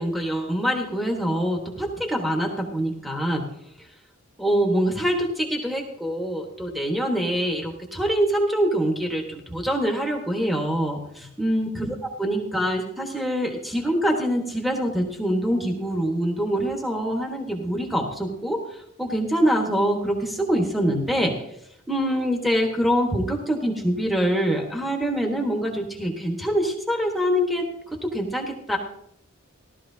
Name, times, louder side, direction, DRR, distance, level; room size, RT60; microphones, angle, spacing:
voice 1, 0.0-3.4 3.8-3.9 4.4-21.4 21.9-28.8, equal, ahead, 1 dB, 1.3 m, -25 dB
16.0 x 12.5 x 2.8 m, 0.75 s
head